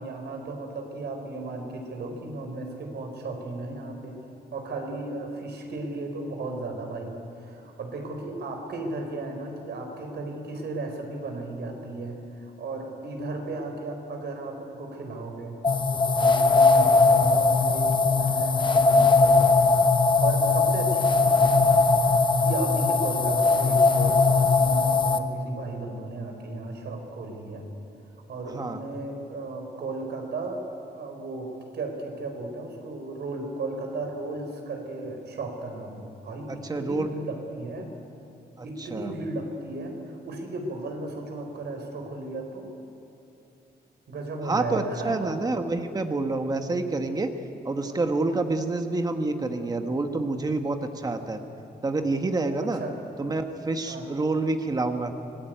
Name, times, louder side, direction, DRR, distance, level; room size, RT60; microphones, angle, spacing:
voice 1, 0.0-4.2 4.5-7.1 7.4-15.5 15.9-19.6 20.2-21.5 22.4-27.7 28.3-30.6 30.9-37.9 38.6-42.6 44.1-45.3 52.7-53.0 53.9-54.1, right 2 dB, 85° right, 3 dB, 4.6 m, -35 dB
sound 1, 15.6-25.2, left 3 dB, 30° left, 1.0 m, -20 dB
voice 2, 36.5-37.1 38.6-39.1 44.4-47.3 47.6-51.4 51.8-52.8 53.2-55.1, right 2 dB, 20° right, 6 dB, 1.3 m, -28 dB
25.5 x 20.0 x 9.3 m, 2.8 s
wide cardioid pair, 180°, 17 cm